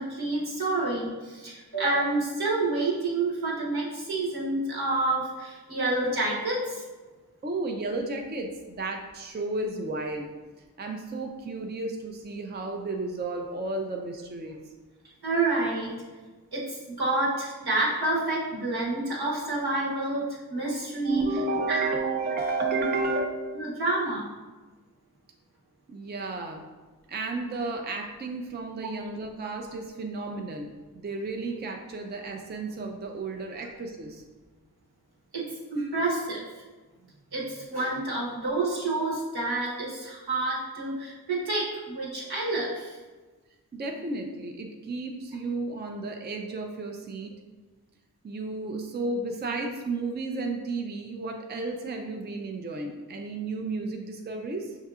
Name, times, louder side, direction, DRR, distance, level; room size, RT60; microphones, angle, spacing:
voice 1, 0.0-6.8 15.2-15.9 16.5-21.2 21.7-21.9 22.7-22.8 23.5-24.3 35.3-36.6 37.3-43.0, right 2 dB, 75° right, -5 dB, 1.2 m, -28 dB
voice 2, 7.4-10.3 10.8-14.6 20.6-23.3 25.9-26.6 27.1-34.2 43.7-47.4 48.2-54.8, right 3 dB, 30° right, 2 dB, 0.4 m, -32 dB
5.8 x 2.7 x 2.4 m, 1.3 s
wide cardioid pair, 50°, 38 cm